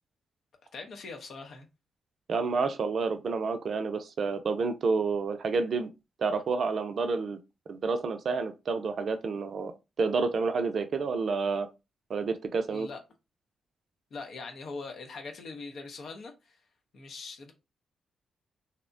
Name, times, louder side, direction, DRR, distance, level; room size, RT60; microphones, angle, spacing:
voice 1, 0.7-1.7 12.7-13.0 14.1-16.6 16.9-17.5, left 3 dB, 65° left, 0.6 m, -42 dB
voice 2, 2.3-5.9 6.2-7.4 7.7-9.7 10.0-11.7 12.1-12.9, right 4 dB, 60° right, 0.4 m, -29 dB
2.8 x 2.1 x 2.5 m
hypercardioid pair, 40°, 0 cm